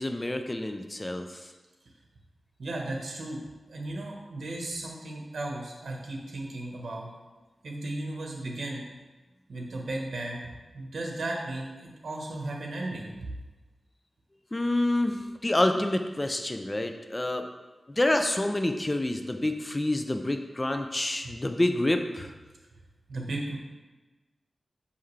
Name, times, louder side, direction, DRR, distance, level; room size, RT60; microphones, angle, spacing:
voice 1, 0.0-1.5 14.5-17.5 17.9-22.3, left 1 dB, 20° left, 6 dB, 0.3 m, -28 dB
voice 2, 2.6-3.4 3.7-7.1 7.6-8.9 9.5-10.4 10.7-13.3 23.1-23.6, right 2 dB, 75° right, 0 dB, 1.1 m, -35 dB
5.7 x 5.6 x 3.2 m, 1.2 s
wide cardioid pair, 125°, 0 cm